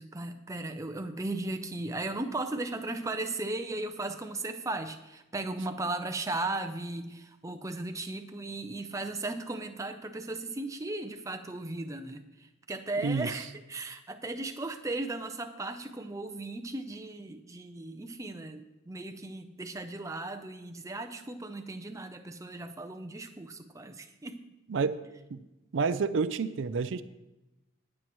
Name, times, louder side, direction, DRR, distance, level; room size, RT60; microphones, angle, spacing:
voice 1, 0.0-24.4, right 2 dB, 15° right, 7 dB, 0.5 m, -36 dB
voice 2, 24.7-25.0 25.3-25.4 25.7-27.0, right 4 dB, 70° right, 13 dB, 0.4 m, -29 dB
20.0 x 7.5 x 3.1 m, 0.99 s
head